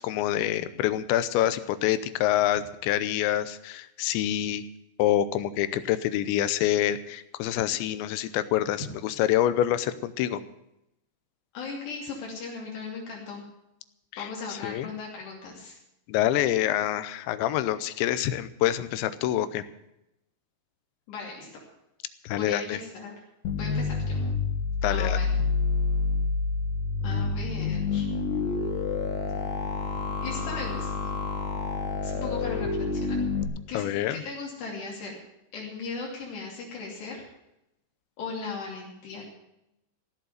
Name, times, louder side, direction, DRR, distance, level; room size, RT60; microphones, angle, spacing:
voice 1, 0.0-4.6 5.0-10.4 14.1-14.9 16.1-19.6 22.2-22.8 24.8-25.2 33.7-34.2, left 12 dB, 90° left, 13 dB, 3.1 m, -26 dB
voice 2, 11.5-13.4 14.2-15.8 21.1-21.5 22.3-23.1 23.5-24.2 24.9-25.3 27.0-28.1 30.2-31.1 32.0-33.2 33.7-33.8 34.1-35.1 35.5-37.2 38.2-39.3, left 4 dB, 70° left, -2 dB, 4.9 m, -37 dB
sound 1, 23.4-33.4, left 4 dB, 55° left, 2.4 m, -28 dB
16.0 x 8.0 x 9.2 m, 0.84 s
omnidirectional pair, 5.1 m